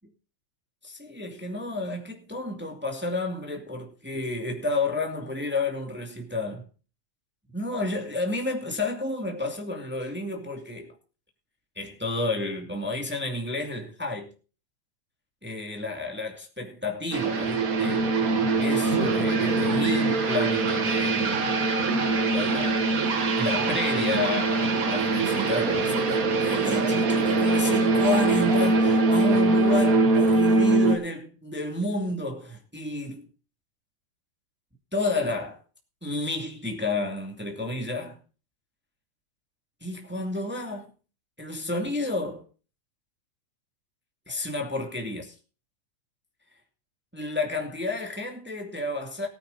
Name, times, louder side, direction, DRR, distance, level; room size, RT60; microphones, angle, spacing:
voice 1, 0.8-6.7 7.5-10.9 11.8-14.3 15.4-18.1 18.6-21.5 22.1-22.8 23.4-33.3 34.9-35.6 36.0-38.2 39.8-40.9 41.4-42.4 44.3-45.3 47.1-49.3, left 2 dB, 5° right, 2.0 m, -31 dB
sound 1, 17.1-31.0, right 3 dB, 50° right, 1.1 m, -23 dB
18.5 x 9.1 x 4.0 m
omnidirectional pair, 3.3 m